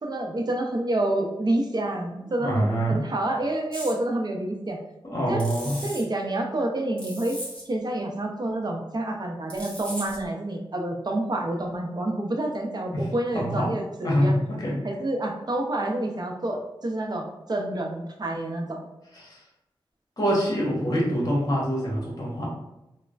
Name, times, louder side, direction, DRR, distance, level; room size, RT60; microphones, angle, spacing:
voice 1, 0.0-4.8 5.3-5.4 5.8-7.4 7.7-14.3 14.8-18.8, right 1 dB, 45° right, 2 dB, 0.6 m, -28 dB
voice 2, 2.4-3.0 5.0-5.8 12.9-13.1 13.3-13.7 14.0-14.8 19.1-19.4 20.2-22.5, equal, 40° left, -3 dB, 1.1 m, -25 dB
sound 1, 3.7-4.0 5.4-6.0 7.0-7.6 9.5-10.3, equal, 10° left, 1.3 m, -37 dB
3.1 x 2.1 x 2.4 m, 0.91 s
cardioid pair, 45°, 10 cm